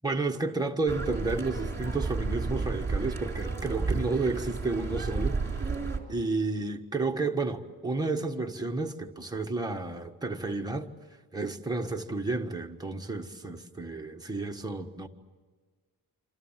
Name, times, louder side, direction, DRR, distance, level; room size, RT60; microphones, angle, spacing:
voice 1, 0.0-5.4 6.1-10.9 11.3-15.1, right 3 dB, 10° right, 1.5 m, -31 dB
sound 1, 0.9-6.0, right 4 dB, 25° right, 3.6 m, -32 dB
27.5 x 27.0 x 7.4 m
wide cardioid pair, 145°, 38 cm